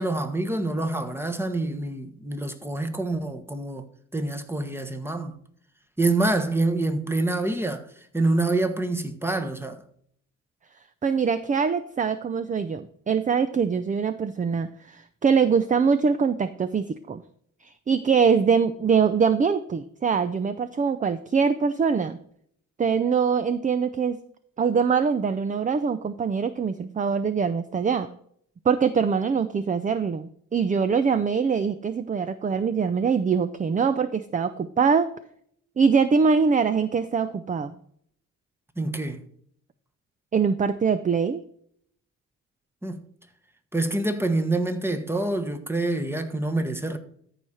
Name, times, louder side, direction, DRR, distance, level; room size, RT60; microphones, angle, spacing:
voice 1, 0.0-3.8 4.1-5.4 6.0-7.9 8.1-9.8 38.8-39.2 42.8-43.0 43.7-47.0, right 2 dB, 10° right, 1.3 m, -26 dB
voice 2, 11.0-17.2 17.6-22.2 22.8-24.2 24.6-28.1 28.6-35.1 35.8-37.7 40.3-41.4, right 6 dB, 25° right, 0.5 m, -23 dB
13.5 x 5.0 x 4.3 m
cardioid pair, 90°, 30 cm